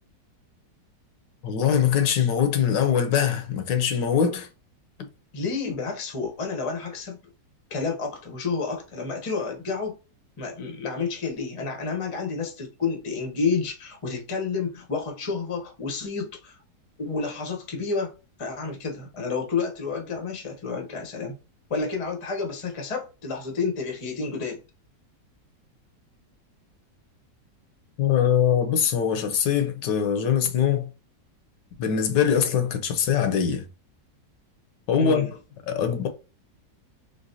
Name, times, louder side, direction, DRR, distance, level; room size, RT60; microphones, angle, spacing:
voice 1, 1.4-4.5 28.0-30.9 31.8-33.6 34.9-35.3 35.7-36.1, left 8 dB, 80° left, 1.4 m, -22 dB
voice 2, 5.3-7.2 7.7-10.0 10.4-16.5 17.0-21.4 21.7-24.6 35.0-35.3, left 4 dB, 30° left, 0.6 m, -30 dB
4.0 x 3.3 x 2.7 m
omnidirectional pair, 1.9 m